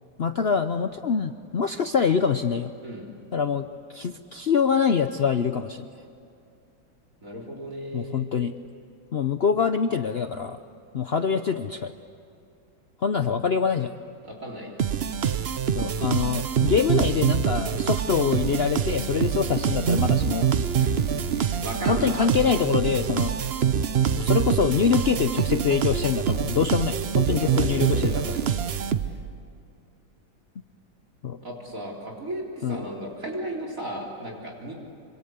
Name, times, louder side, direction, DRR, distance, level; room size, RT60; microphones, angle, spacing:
voice 1, 0.2-2.7 3.3-5.9 7.9-8.5 9.1-10.6 10.9-11.9 13.0-13.9 15.7-20.5 21.9-23.3 24.2-28.2 31.2-31.4 32.6-32.9, left 6 dB, 90° left, 8 dB, 0.5 m, -24 dB
voice 2, 7.2-8.3 14.2-14.8 20.8-22.3 27.2-28.4 31.4-34.7, equal, 40° right, 0 dB, 4.3 m, -35 dB
sound 1, 14.8-29.4, right 8 dB, 60° right, 0.6 m, -25 dB
26.5 x 26.0 x 8.1 m, 2.5 s
omnidirectional pair, 2.1 m